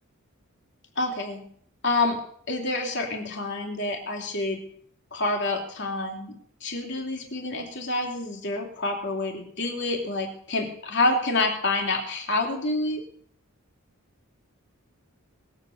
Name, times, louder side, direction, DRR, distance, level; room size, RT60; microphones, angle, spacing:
voice 1, 1.0-1.4 1.8-2.2 2.5-4.6 5.1-6.3 6.6-13.0, left 2 dB, 55° left, 2 dB, 3.2 m, -27 dB
20.5 x 8.2 x 8.0 m, 0.63 s
head